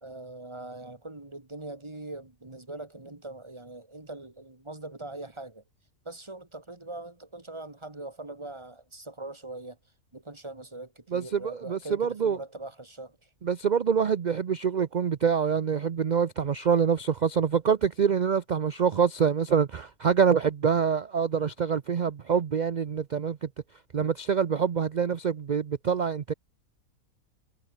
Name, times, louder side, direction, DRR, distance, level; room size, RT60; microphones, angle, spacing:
voice 1, 0.0-5.6 6.0-9.8 10.1-13.3, right 2 dB, 20° right, 2.1 m, -42 dB
voice 2, 11.1-12.4 13.4-23.5 23.9-26.3, right 7 dB, 45° right, 0.6 m, -25 dB
omnidirectional pair, 1.5 m